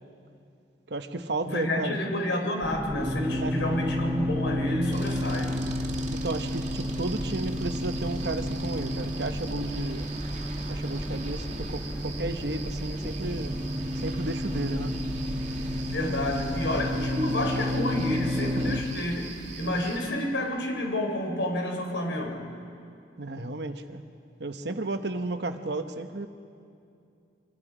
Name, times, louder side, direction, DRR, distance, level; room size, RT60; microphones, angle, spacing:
voice 1, 0.9-2.0 3.4-3.9 6.1-10.1 10.7-13.6 14.0-14.9 18.6-18.8 23.2-24.0 24.4-26.3, right 2 dB, 65° right, 7 dB, 1.0 m, -33 dB
voice 2, 1.4-5.5 15.8-19.3 19.6-22.4, left 1 dB, 80° left, 2 dB, 3.8 m, -29 dB
sound 1, 2.6-18.8, equal, 15° right, 1.6 m, -31 dB
sound 2, 4.9-20.0, right 3 dB, 40° right, 2.0 m, -42 dB
25.0 x 24.5 x 5.0 m, 2.5 s
head